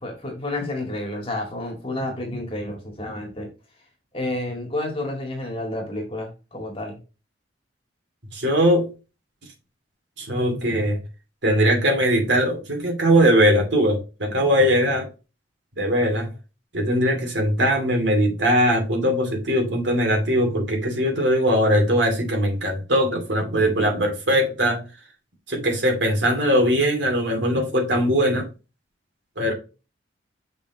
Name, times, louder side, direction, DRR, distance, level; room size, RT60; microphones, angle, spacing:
voice 1, 0.0-3.5 4.1-7.0, left 1 dB, 30° left, 2.0 m, -30 dB
voice 2, 8.3-8.9 10.2-11.0 11.4-15.1 15.8-16.3 16.7-24.8 25.5-28.5 29.4-29.5, equal, 75° right, 2.6 m, -20 dB
6.9 x 5.2 x 2.8 m
head